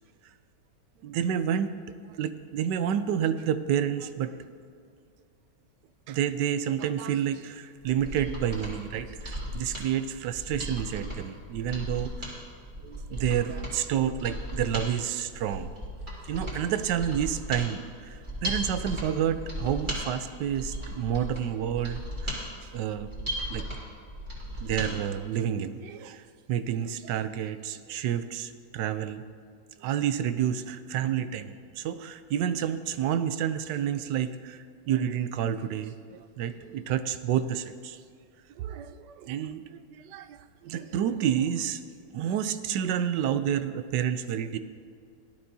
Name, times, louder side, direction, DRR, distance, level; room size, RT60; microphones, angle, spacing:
voice 1, 1.0-1.8 2.1-4.4 6.1-12.3 12.8-15.7 16.3-22.5 22.7-23.1 23.5-23.7 24.6-26.2 26.5-29.2 29.8-38.0 38.6-41.8 42.1-44.6, right 9 dB, 75° right, 11 dB, 1.2 m, -29 dB
Mechanisms, 7.8-24.9 25.2-25.3, equal, 25° right, 2.7 m, -36 dB
17.0 x 12.0 x 2.7 m, 2.2 s
omnidirectional pair, 1.9 m